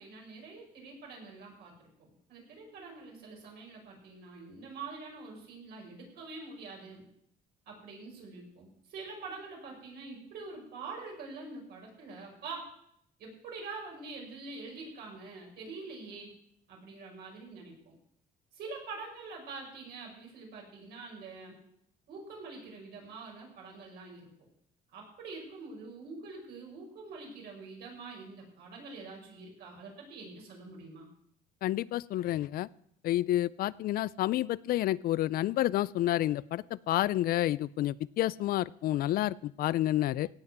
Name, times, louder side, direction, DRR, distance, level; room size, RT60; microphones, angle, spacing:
voice 1, 0.0-1.7 2.3-7.0 7.7-12.7 13.2-16.3 16.7-17.9 18.5-21.6 22.1-24.3 24.9-31.1, right 3 dB, 75° right, -1 dB, 5.9 m, -45 dB
voice 2, 31.6-32.7 33.0-40.3, left 14 dB, 60° left, 21 dB, 0.4 m, -29 dB
17.0 x 5.8 x 7.9 m, 0.71 s
cardioid pair, 110°, 17 cm